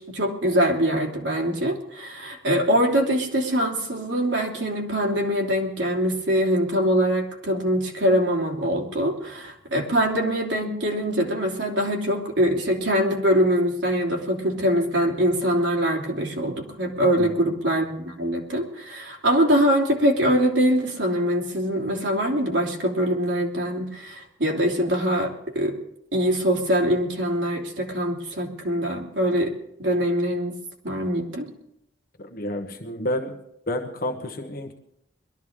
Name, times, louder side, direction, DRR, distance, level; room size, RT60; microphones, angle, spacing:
voice 1, 0.1-25.7 26.1-29.5 29.8-30.6 30.8-31.5, equal, 75° right, -1 dB, 3.0 m, -23 dB
voice 2, 17.2-17.5 32.2-33.4 33.7-34.7, left 1 dB, 50° left, 4 dB, 1.1 m, -30 dB
22.0 x 13.0 x 3.6 m, 0.77 s
head